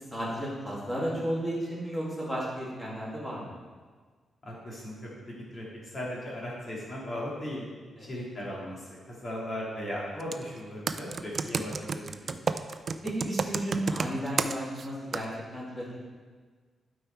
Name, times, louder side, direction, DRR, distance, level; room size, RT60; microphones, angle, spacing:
voice 1, 0.1-3.5 8.0-8.1 13.0-16.0, equal, 5° left, -6 dB, 2.2 m, -33 dB
voice 2, 4.4-5.1 5.5-7.7 8.0-12.4, left 1 dB, 30° left, -4 dB, 2.3 m, -37 dB
Computer keyboard, 10.2-10.4 10.9-14.9 15.1-15.3, right 5 dB, 40° right, 0.3 m, -30 dB
11.5 x 4.7 x 4.5 m, 1.5 s
wide cardioid pair, 165°, 0 cm